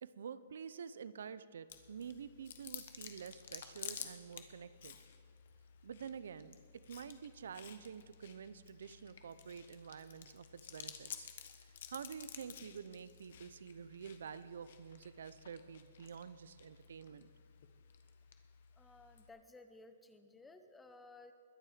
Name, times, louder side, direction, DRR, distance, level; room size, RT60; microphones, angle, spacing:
voice 1, 0.0-5.0 5.8-11.3 11.6-17.3, right 7 dB, 75° right, 15 dB, 0.6 m, -49 dB
Chewing mastication, 1.7-19.3, left 8 dB, 60° left, 1.2 m, -53 dB
voice 2, 18.8-21.3, left 2 dB, 5° left, 8 dB, 0.7 m, -58 dB
21.5 x 7.6 x 5.0 m, 2.1 s
hypercardioid pair, 155°, 0 cm